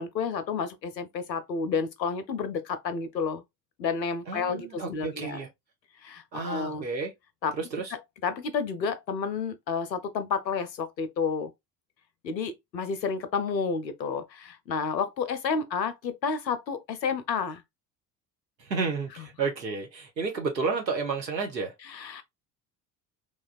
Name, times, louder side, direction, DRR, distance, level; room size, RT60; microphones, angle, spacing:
voice 1, 0.0-3.4 3.8-5.4 6.0-6.8 7.4-7.5 7.9-11.5 12.2-17.6 21.9-22.2, left 5 dB, 85° left, 0.6 m, -30 dB
voice 2, 4.3-5.5 6.3-7.1 7.6-7.9 18.6-21.7, right 4 dB, 85° right, 0.7 m, -31 dB
3.2 x 2.3 x 2.3 m
figure-of-eight pair, 60°, 50 cm